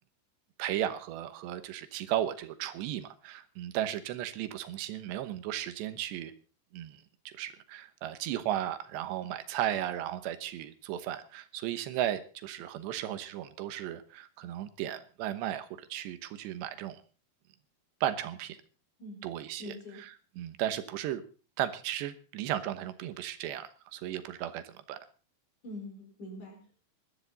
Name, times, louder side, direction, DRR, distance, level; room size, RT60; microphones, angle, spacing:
voice 1, 0.6-6.3 6.7-17.0 18.0-18.6 19.2-20.1 20.4-21.2 21.6-25.0, right 12 dB, 85° right, 11 dB, 3.2 m, -35 dB
voice 2, 19.6-20.0 25.6-26.7, left 1 dB, 45° left, 2 dB, 6.1 m, -44 dB
21.5 x 12.5 x 4.0 m, 0.35 s
omnidirectional pair, 4.9 m